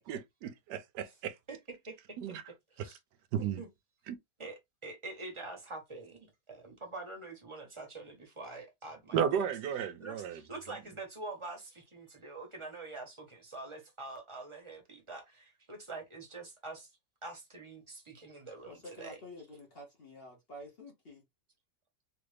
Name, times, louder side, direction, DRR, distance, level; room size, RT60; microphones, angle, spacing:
voice 1, 0.0-1.4 2.2-2.4 2.8-2.9 3.3-3.6 4.1-4.2 9.1-10.4, right 8 dB, 90° right, 1.2 m, -34 dB
voice 2, 4.4-9.5 10.0-16.9 17.2-19.2, right 3 dB, 20° right, 0.9 m, -45 dB
voice 3, 18.7-21.2, left 1 dB, 45° left, 0.9 m, -49 dB
3.3 x 2.5 x 3.2 m
omnidirectional pair, 1.8 m